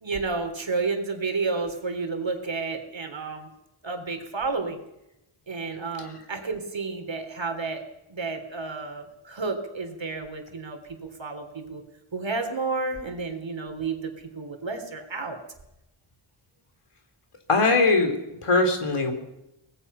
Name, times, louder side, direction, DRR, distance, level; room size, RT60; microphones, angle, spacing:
voice 1, 0.0-3.5 3.8-4.8 5.5-7.8 8.1-11.8 12.1-15.4, right 4 dB, 60° right, 6 dB, 3.7 m, -31 dB
voice 2, 17.5-19.1, left 3 dB, 85° left, 6 dB, 3.6 m, -21 dB
24.5 x 19.0 x 5.7 m, 0.89 s
wide cardioid pair, 65°, 50 cm